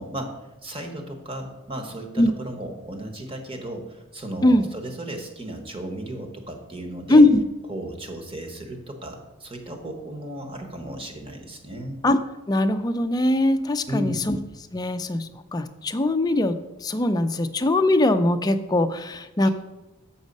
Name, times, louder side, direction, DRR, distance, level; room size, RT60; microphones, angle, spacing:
voice 1, 0.0-7.2 7.7-12.0 13.9-14.3 19.4-19.5, right 1 dB, 25° right, 3 dB, 1.1 m, -35 dB
voice 2, 7.1-7.4 12.0-12.2 12.5-14.4 14.7-16.5 16.8-19.5, left 1 dB, 20° left, 8 dB, 0.4 m, -20 dB
7.1 x 6.3 x 5.3 m, 1.0 s
head